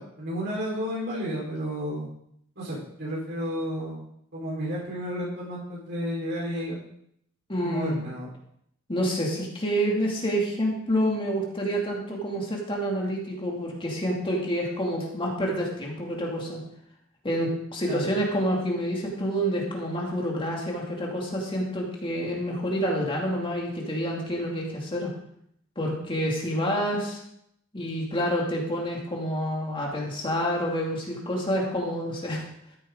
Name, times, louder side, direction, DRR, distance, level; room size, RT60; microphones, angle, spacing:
voice 1, 0.0-2.1 2.6-4.0 4.3-6.8 7.6-8.3 17.8-18.1, equal, 55° right, -6 dB, 4.5 m, -32 dB
voice 2, 7.5-8.0 8.9-16.6 17.2-25.1 25.8-27.2 27.7-32.4, equal, 25° left, -2 dB, 2.5 m, -28 dB
13.5 x 9.3 x 3.9 m, 0.71 s
head